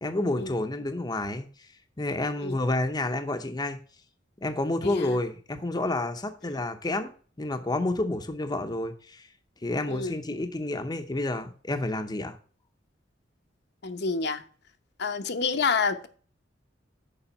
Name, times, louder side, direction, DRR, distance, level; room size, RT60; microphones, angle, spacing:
voice 1, 0.0-3.8 4.4-7.1 7.4-9.3 9.6-12.4, left 2 dB, 20° left, 0.7 m, -30 dB
voice 2, 4.8-5.2 9.9-10.1 13.8-14.4 15.0-16.1, left 5 dB, 60° left, 0.8 m, -28 dB
7.0 x 4.9 x 5.5 m
head